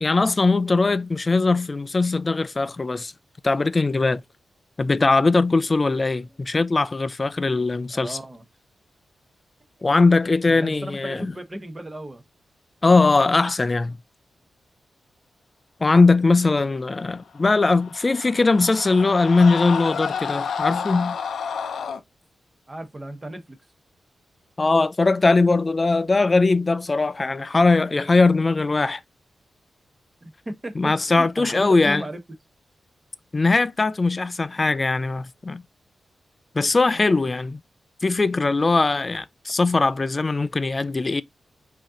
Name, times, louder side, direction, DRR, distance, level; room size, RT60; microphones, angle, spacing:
voice 1, 0.0-3.1 3.4-4.2 4.8-8.2 9.8-11.3 12.8-14.0 15.8-21.2 24.6-29.0 30.8-32.0 33.3-35.6 36.5-37.6 38.0-41.2, left 3 dB, 30° left, 0.4 m, -20 dB
voice 2, 7.9-8.4 10.5-12.2 22.7-23.6 30.2-32.2, right 1 dB, 20° right, 1.0 m, -35 dB
Screaming, 17.6-22.0, left 6 dB, 80° left, 0.6 m, -30 dB
5.1 x 2.8 x 3.7 m
wide cardioid pair, 95°, 0 cm